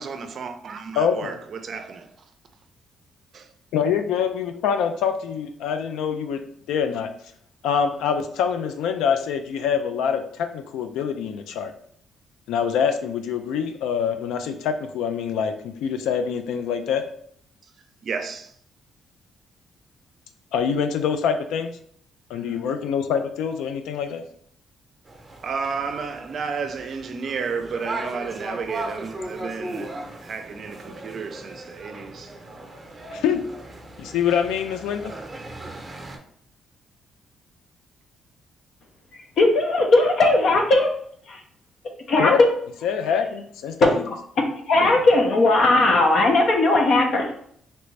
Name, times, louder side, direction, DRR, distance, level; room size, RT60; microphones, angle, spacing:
voice 1, 0.0-2.1 3.3-3.5 18.0-18.5 25.4-32.4, right 5 dB, 55° right, 0.4 m, -32 dB
voice 2, 1.0-1.4 3.7-7.1 7.6-11.7 12.5-17.1 20.5-21.8 22.3-24.2 33.1-33.5 34.0-35.1 42.2-42.4 42.8-44.0, left 7 dB, 90° left, 0.3 m, -25 dB
sound 1, 25.1-36.2, right 2 dB, 20° right, 0.7 m, -37 dB
voice 3, 39.4-40.9 41.3-41.4 42.1-42.6 43.8-43.9 44.4-47.4, left 2 dB, 65° left, 0.7 m, -18 dB
3.3 x 2.6 x 3.1 m
cardioid pair, 90°, 0 cm